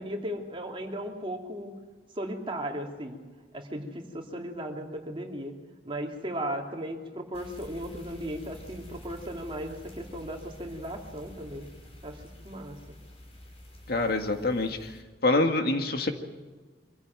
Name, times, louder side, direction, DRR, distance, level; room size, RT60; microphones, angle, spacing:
voice 1, 0.0-1.7 2.1-3.2 3.5-5.5 5.8-11.7 12.0-12.8, equal, 30° right, 1 dB, 2.8 m, -36 dB
sound 1, 7.3-15.0, left 1 dB, 35° left, 5.6 m, -48 dB
voice 2, 13.9-14.9 15.2-16.1, left 2 dB, 60° left, 5 dB, 1.9 m, -25 dB
24.5 x 15.5 x 9.0 m, 1.4 s
head